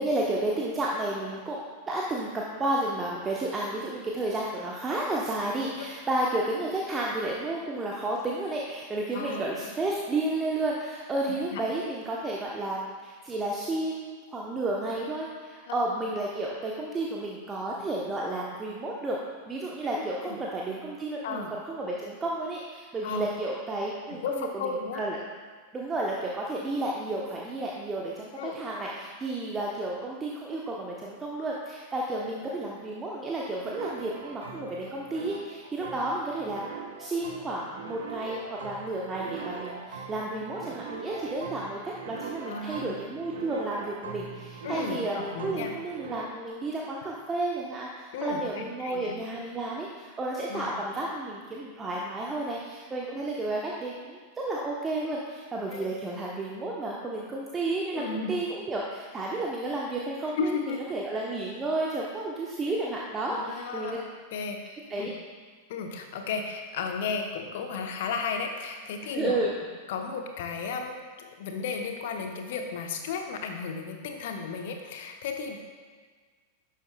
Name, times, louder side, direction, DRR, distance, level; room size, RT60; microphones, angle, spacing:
voice 1, 0.0-19.2 19.5-25.2 25.7-36.6 37.0-54.2 54.4-64.0 64.9-65.1 69.1-69.5, right 2 dB, 20° right, -3 dB, 0.9 m, -32 dB
voice 2, 9.1-9.7 11.2-11.6 15.7-15.8 20.2-20.4 21.2-21.5 23.0-23.3 24.1-25.0 28.4-28.6 32.1-32.3 42.5-42.9 44.6-45.7 48.1-49.1 50.5-50.7 55.7-55.9 57.9-58.3 60.4-60.8 63.3-64.0 64.3-64.6 65.0-65.1 65.7-69.4 69.9-75.6, left 5 dB, 55° left, 4 dB, 0.9 m, -34 dB
sound 1, 33.6-46.2, right 5 dB, 65° right, 0.9 m, -41 dB
11.0 x 7.4 x 2.3 m, 1.5 s
figure-of-eight pair, 90°, 0 cm